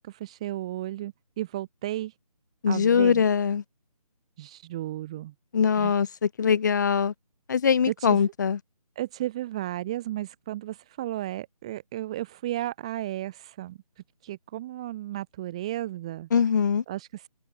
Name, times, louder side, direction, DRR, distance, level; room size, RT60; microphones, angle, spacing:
voice 1, 0.0-2.1 2.7-3.2 4.4-5.3 5.8-5.9 7.9-8.2 9.0-13.8 14.2-16.3 16.9-17.3, right 14 dB, 10° right, 0.8 m, -34 dB
voice 2, 2.6-3.6 5.5-7.1 7.5-8.6 16.3-16.8, left 6 dB, 30° left, 1.3 m, -22 dB
figure-of-eight pair, 170°, 20 cm